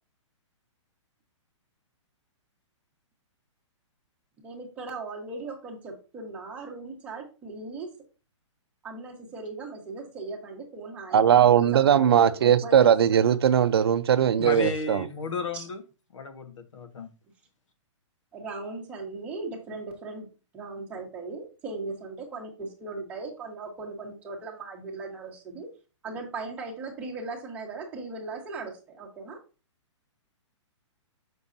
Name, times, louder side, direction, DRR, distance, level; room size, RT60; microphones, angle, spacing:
voice 1, 4.4-7.9 8.8-12.9 14.5-14.8 15.5-15.7 18.3-25.7 26.0-29.4, right 3 dB, 10° right, 1.2 m, -38 dB
voice 2, 11.1-15.1, right 9 dB, 55° right, 0.5 m, -19 dB
voice 3, 14.4-15.8 16.1-17.1, left 3 dB, 75° left, 1.5 m, -33 dB
7.1 x 6.1 x 2.7 m
hypercardioid pair, 175°, 16 cm